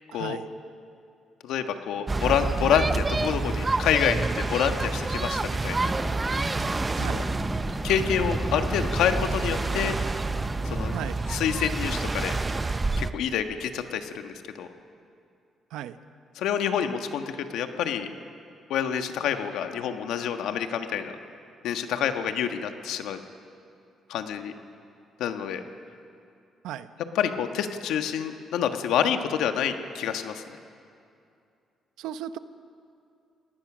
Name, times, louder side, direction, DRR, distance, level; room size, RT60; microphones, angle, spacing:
voice 1, 0.1-0.5 7.0-7.2 10.9-11.2 15.7-16.0 26.6-26.9 32.0-32.4, right 11 dB, 90° right, 12 dB, 0.9 m, -35 dB
voice 2, 1.4-5.9 7.1-7.2 7.8-10.0 10.6-10.9 11.3-12.4 13.0-14.7 16.3-18.1 18.7-21.2 21.6-23.2 24.1-24.5 25.2-25.6 27.1-30.4, left 8 dB, 85° left, 7 dB, 1.5 m, -27 dB
sound 1, 2.1-13.1, right 3 dB, 25° right, 0.9 m, -28 dB
sound 2, 5.8-11.1, left 1 dB, 15° left, 1.8 m, -37 dB
28.0 x 19.0 x 6.3 m, 2.6 s
cardioid pair, 90°, 0 cm